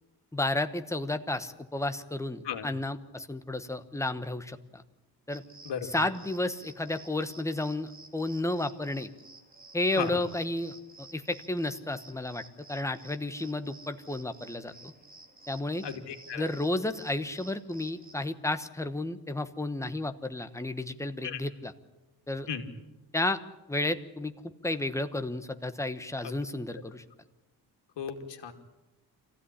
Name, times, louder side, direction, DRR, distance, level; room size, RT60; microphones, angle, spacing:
voice 1, 0.3-4.8 5.3-5.4 5.8-9.1 9.7-12.4 12.7-14.9 15.5-15.8 16.3-21.7 22.3-22.5 23.1-23.4 23.7-24.3 24.6-27.0, left 2 dB, 5° left, 9 dB, 1.1 m, -32 dB
sound 1, 5.3-18.1, right 2 dB, 20° right, 2.7 m, -53 dB
voice 2, 15.8-16.5 21.2-21.4 22.5-22.7 28.0-28.5, left 7 dB, 90° left, 5 dB, 2.6 m, -35 dB
25.5 x 15.5 x 10.0 m, 1.0 s
wide cardioid pair, 150°, 41 cm